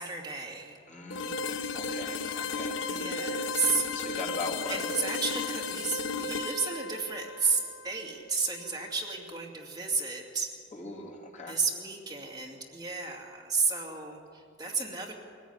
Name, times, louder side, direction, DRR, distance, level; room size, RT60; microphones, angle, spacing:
voice 1, 0.0-0.8 2.9-3.9 4.7-10.5 11.5-15.1, right 4 dB, 20° right, -1 dB, 2.5 m, -32 dB
voice 2, 0.9-3.0 3.9-4.8 10.7-11.6, left 3 dB, 40° left, -1 dB, 2.8 m, -40 dB
sound 1, 1.1-8.9, left 4 dB, 90° left, 1.1 m, -35 dB
22.0 x 14.5 x 9.6 m, 2.4 s
head